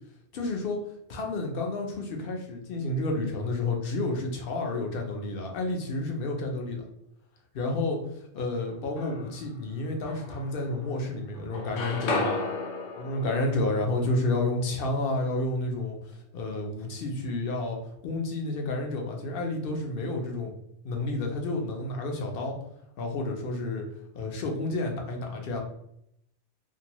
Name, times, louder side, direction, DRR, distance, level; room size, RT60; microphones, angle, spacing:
voice 1, 0.3-0.8 1.1-6.8 7.5-8.0 8.3-12.5 13.0-16.0 16.3-17.8 18.0-20.6 20.8-22.6 23.0-23.9 24.1-25.6, left 2 dB, 60° left, 2 dB, 0.7 m, -30 dB
sound 1, 8.6-9.5 10.1-11.1 11.3-15.3, left 3 dB, 90° left, 0.9 m, -35 dB
2.6 x 2.6 x 2.9 m, 0.76 s
omnidirectional pair, 1.2 m